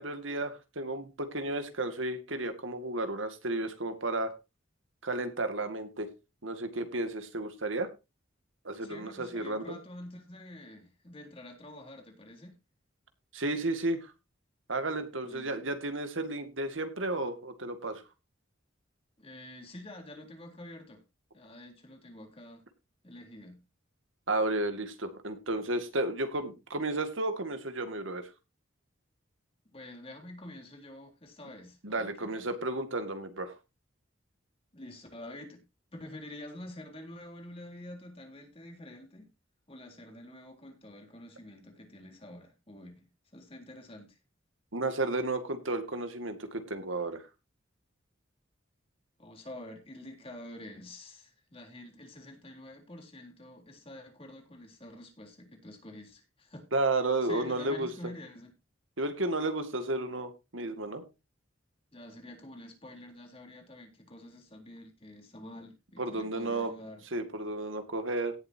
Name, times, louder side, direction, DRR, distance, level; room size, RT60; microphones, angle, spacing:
voice 1, 0.0-4.3 5.0-6.1 6.4-7.9 8.6-9.8 13.3-14.1 14.7-18.0 24.3-28.2 31.8-33.5 44.7-47.2 56.7-57.9 59.0-61.0 66.0-66.7 67.1-68.3, right 2 dB, 80° right, 2.1 m, -32 dB
voice 2, 8.8-12.6 15.2-15.5 19.2-21.0 21.3-22.6 23.0-23.6 29.7-32.5 34.7-35.6 35.9-39.3 39.7-43.1 43.3-44.2 49.2-56.7 57.2-58.5 61.9-67.0, left 1 dB, 30° left, 3.6 m, -47 dB
17.5 x 7.9 x 2.8 m
head